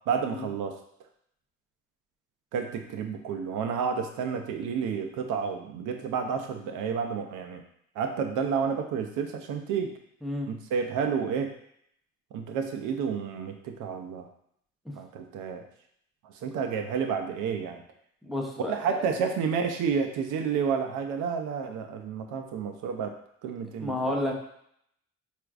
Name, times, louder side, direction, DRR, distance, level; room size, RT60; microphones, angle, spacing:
voice 1, 0.1-0.8 2.5-7.6 8.0-9.9 10.5-11.5 12.3-14.3 14.9-15.6 16.2-17.8 18.6-23.1 23.4-24.2, right 6 dB, 90° right, 5 dB, 0.5 m, -30 dB
voice 2, 18.2-19.1 23.8-24.3, left 1 dB, ahead, 0 dB, 0.6 m, -31 dB
4.3 x 2.5 x 2.4 m, 0.70 s
cardioid pair, 90°, 30 cm